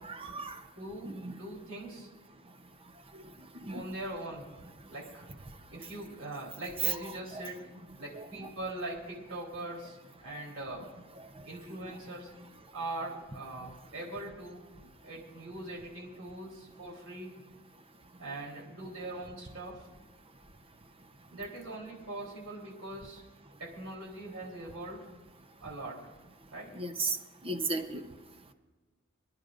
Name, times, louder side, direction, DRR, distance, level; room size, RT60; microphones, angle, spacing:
voice 1, 0.0-0.6 1.0-1.3 3.7-3.8 7.4-7.5 8.1-8.2 26.8-27.2 27.4-28.0, right 3 dB, 25° right, 6 dB, 0.8 m, -35 dB
voice 2, 0.8-2.1 3.2-3.3 3.7-4.6 4.9-5.3 5.7-7.6 8.0-11.0 11.4-12.3 12.7-14.6 15.0-17.3 18.2-19.9 21.3-23.2 23.6-25.1 25.6-26.1 26.5-26.8, right 1 dB, 80° right, -3 dB, 3.6 m, -41 dB
28.0 x 10.5 x 2.5 m, 1.3 s
head